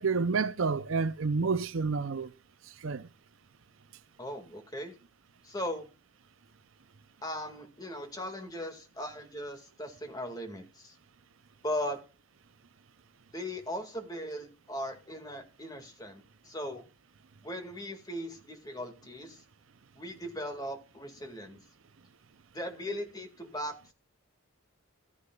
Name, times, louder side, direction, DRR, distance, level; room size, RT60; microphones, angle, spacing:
voice 1, 0.0-2.3 2.8-3.1, right 4 dB, 70° right, 0.6 m, -29 dB
voice 2, 4.2-4.9 5.4-5.9 7.2-11.0 11.6-12.0 13.3-16.8 17.4-19.4 20.0-21.6 22.5-23.9, equal, 20° left, 2.1 m, -38 dB
14.5 x 9.8 x 2.4 m
head